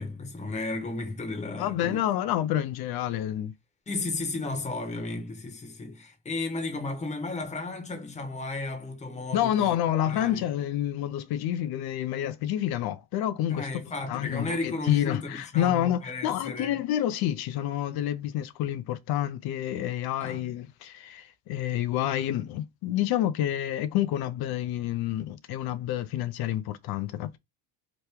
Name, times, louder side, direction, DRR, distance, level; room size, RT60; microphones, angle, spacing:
voice 1, 0.0-2.0 3.9-9.7 10.0-10.4 13.5-16.8 20.2-20.5, left 3 dB, 15° left, 1.0 m, -34 dB
voice 2, 1.6-3.5 9.3-13.7 14.1-27.4, left 12 dB, 55° left, 0.6 m, -28 dB
3.0 x 2.1 x 3.4 m
supercardioid pair, 110°, 45 cm